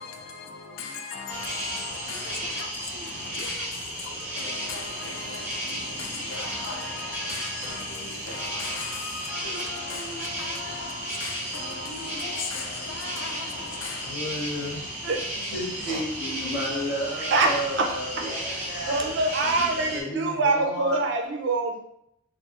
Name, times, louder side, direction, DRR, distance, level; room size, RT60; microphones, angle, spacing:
voice 1, 0.0-14.9, left 4 dB, 75° left, 0.4 m, -37 dB
sound 1, 1.3-20.0, right 1 dB, 10° right, 0.7 m, -34 dB
voice 2, 15.5-19.1 19.6-21.0, equal, 55° left, 0.8 m, -32 dB
voice 3, 17.2-17.5 17.8-17.9 18.9-21.8, right 3 dB, 60° right, 0.4 m, -25 dB
2.7 x 2.4 x 2.3 m
head